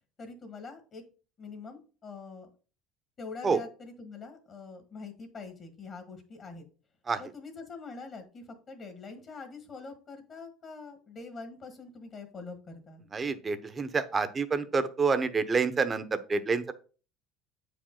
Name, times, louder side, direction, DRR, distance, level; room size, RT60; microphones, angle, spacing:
voice 1, 0.2-1.0 1.4-2.5 3.2-6.6 7.2-13.0, left 4 dB, 35° left, 6 dB, 1.5 m, -44 dB
voice 2, 13.1-16.7, right 4 dB, 25° right, 11 dB, 0.9 m, -28 dB
8.2 x 5.1 x 3.9 m, 0.37 s
supercardioid pair, 115°, 0 cm